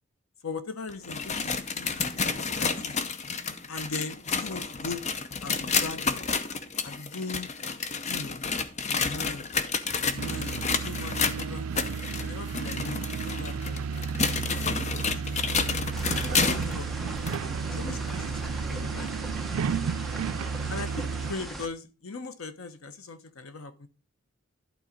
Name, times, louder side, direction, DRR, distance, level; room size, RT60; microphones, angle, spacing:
voice 1, 0.4-3.0 3.7-5.0 5.4-6.2 6.8-7.5 8.1-8.4 8.9-9.5 10.0-11.7 12.2-14.7 14.9-15.8 16.2-19.1 20.7-23.9, left 3 dB, 80° left, 0.9 m, -40 dB
sound 1, 0.9-16.8 17.3-17.4 18.1-18.2 19.1-19.2, left 5 dB, 35° left, 0.6 m, -30 dB
sound 2, 10.1-21.3, right 6 dB, 90° right, 0.4 m, -32 dB
sound 3, 15.9-21.7, equal, ahead, 0.8 m, -39 dB
11.5 x 3.9 x 5.1 m
head